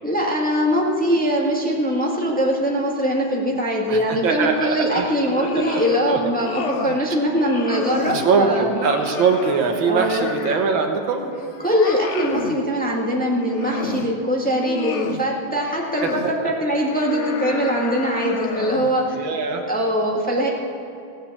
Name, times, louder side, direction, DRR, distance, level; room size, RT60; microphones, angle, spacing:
voice 1, 0.0-8.7 9.9-10.3 11.6-19.1 19.7-20.5, equal, 5° left, -2 dB, 1.4 m, -22 dB
voice 2, 3.9-6.2 8.1-11.3 16.0-16.5 19.1-19.6, right 5 dB, 80° right, 4 dB, 2.0 m, -22 dB
sound 1, 5.1-6.0 6.3-7.0 7.4-8.3 8.7-10.8 11.2-12.6 13.3-14.1 14.5-15.2 15.7-16.3 16.8-19.0, left 6 dB, 60° left, 0.7 m, -31 dB
17.0 x 7.7 x 7.1 m, 2.8 s
omnidirectional pair, 2.1 m